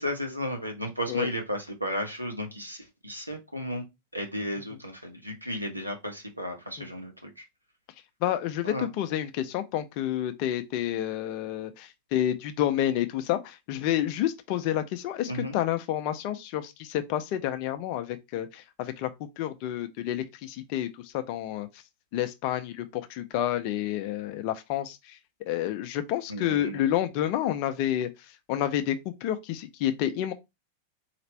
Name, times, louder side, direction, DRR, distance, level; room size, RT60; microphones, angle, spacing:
voice 1, 0.0-3.8 4.1-7.4 8.6-8.9 15.3-15.6 26.3-27.0, equal, 90° right, 0.8 m, -34 dB
voice 2, 8.2-19.1 19.4-21.7 22.1-25.2 25.5-28.1 28.5-30.3, left 12 dB, 45° left, 0.5 m, -29 dB
4.3 x 2.4 x 3.1 m
figure-of-eight pair, 90°, 0 cm